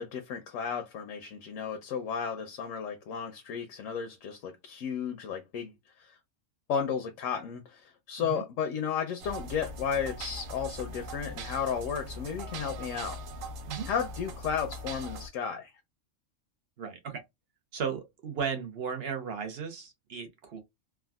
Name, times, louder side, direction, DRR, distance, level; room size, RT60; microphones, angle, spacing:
voice 1, 0.0-5.7 6.0-6.2 6.7-13.2 13.9-15.7, left 7 dB, 80° left, 1.0 m, -33 dB
sound 1, 9.2-15.3, right 1 dB, 90° right, 1.1 m, -41 dB
voice 2, 16.8-17.2 17.7-20.6, right 6 dB, 55° right, 0.9 m, -35 dB
3.5 x 2.2 x 2.2 m
omnidirectional pair, 1.3 m